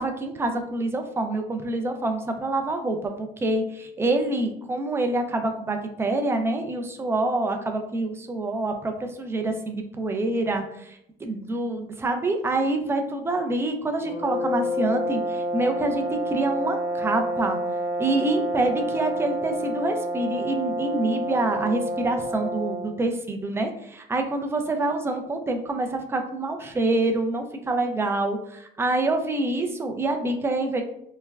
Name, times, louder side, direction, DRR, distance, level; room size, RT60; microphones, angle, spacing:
voice 1, 0.0-17.6 18.0-30.8, right 2 dB, 15° right, 4 dB, 0.3 m, -26 dB
sound 1, 14.0-23.0, equal, 90° left, 0.8 m, -29 dB
3.1 x 2.1 x 2.2 m, 0.75 s
cardioid pair, 110°, 17 cm